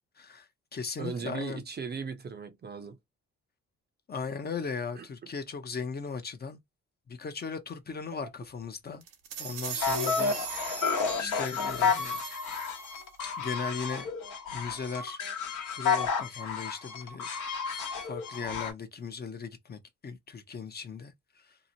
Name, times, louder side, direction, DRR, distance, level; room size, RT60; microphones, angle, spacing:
voice 1, 0.2-1.6 4.1-6.6 7.1-9.0 9.4-10.9 11.2-12.2 13.4-14.1 14.5-15.2 15.7-17.3 18.1-21.6, left 5 dB, 35° left, 0.6 m, -38 dB
voice 2, 1.0-3.0 5.0-5.1 8.2-8.3, right 5 dB, 35° right, 0.5 m, -37 dB
sound 1, 9.0-13.0, right 8 dB, 90° right, 0.7 m, -39 dB
sound 2, 9.8-18.7, left 5 dB, 75° left, 0.9 m, -31 dB
2.7 x 2.1 x 2.7 m
cardioid pair, 90°, 30 cm